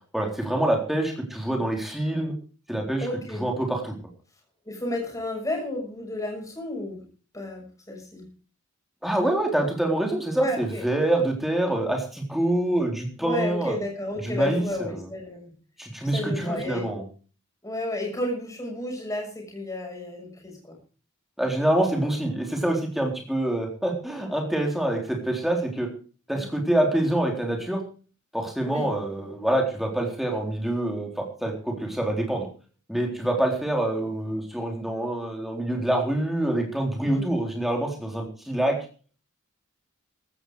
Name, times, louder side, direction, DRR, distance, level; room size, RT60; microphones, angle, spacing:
voice 1, 0.1-2.3 2.7-4.0 9.0-13.7 14.2-14.6 15.8-17.0 21.4-25.9 26.3-27.8 28.3-32.5 32.9-38.8, right 1 dB, ahead, 1 dB, 3.9 m, -26 dB
voice 2, 3.0-3.5 4.6-7.0 7.3-8.2 10.4-10.8 13.2-15.5 16.1-16.9 17.6-20.8 26.3-26.5 28.7-28.9 37.0-37.3, left 1 dB, 15° left, 1 dB, 6.6 m, -32 dB
16.0 x 12.5 x 4.9 m, 0.39 s
head